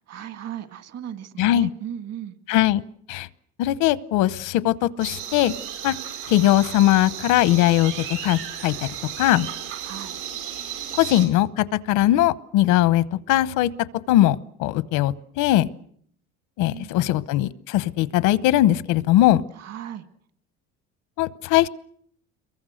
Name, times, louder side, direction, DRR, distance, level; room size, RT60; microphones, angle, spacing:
voice 1, 0.1-2.4 9.8-10.2 16.7-17.2 19.5-20.1, right 10 dB, 55° right, 10 dB, 1.9 m, -37 dB
voice 2, 1.4-1.7 2.5-2.8 3.1-3.3 3.6-5.5 5.8-5.9 6.3-7.9 8.2-8.7 9.2-9.5 11.0-13.7 14.1-15.7 16.6-19.4 21.2-21.7, left 14 dB, 85° left, 18 dB, 0.9 m, -20 dB
sound 1, 5.0-11.3, right 9 dB, 80° right, 7.3 m, -34 dB
27.0 x 23.0 x 6.5 m, 0.65 s
cardioid pair, 120°, 30 cm